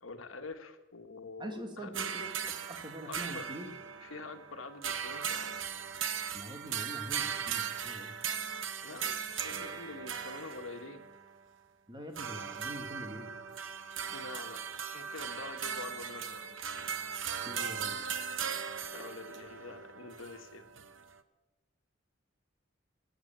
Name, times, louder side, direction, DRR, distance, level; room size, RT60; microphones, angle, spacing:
voice 1, 0.0-1.9 3.1-3.4 4.0-5.6 8.8-11.1 14.1-14.6 14.9-16.6 18.8-20.7, left 3 dB, 80° left, 6 dB, 1.4 m, -46 dB
voice 2, 1.4-3.7 6.3-8.1 11.9-13.3 17.5-18.0, equal, 25° right, 4 dB, 2.0 m, -44 dB
sound 1, 1.9-11.4 12.1-21.2, right 7 dB, 65° right, 0.9 m, -38 dB
18.5 x 8.1 x 8.7 m, 1.1 s
head